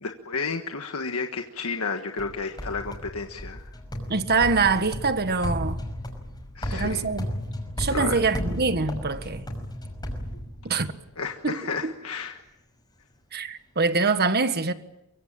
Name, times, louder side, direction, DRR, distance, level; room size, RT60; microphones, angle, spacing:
voice 1, 0.0-3.7 6.5-7.0 7.9-8.2 11.2-12.4, left 4 dB, 75° left, 1.5 m, -32 dB
sound 1, 2.2-11.0, equal, 20° left, 5.8 m, -34 dB
voice 2, 4.1-5.8 6.7-7.3 7.8-9.5 10.6-10.9 11.4-11.9 13.3-14.7, right 4 dB, 50° right, 1.6 m, -24 dB
24.0 x 24.0 x 8.9 m
head